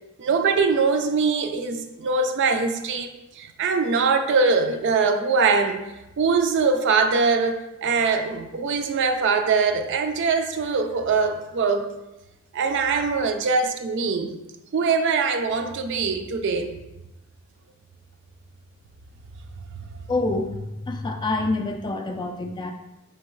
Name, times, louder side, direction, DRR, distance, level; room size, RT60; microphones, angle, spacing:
voice 1, 0.2-3.1 3.4-5.8 6.2-11.9 12.5-14.3 14.7-16.7, right 4 dB, 55° right, 6 dB, 0.4 m, -22 dB
voice 2, 20.1-22.7, left 2 dB, 20° left, 4 dB, 0.3 m, -27 dB
4.6 x 3.3 x 3.1 m, 0.96 s
head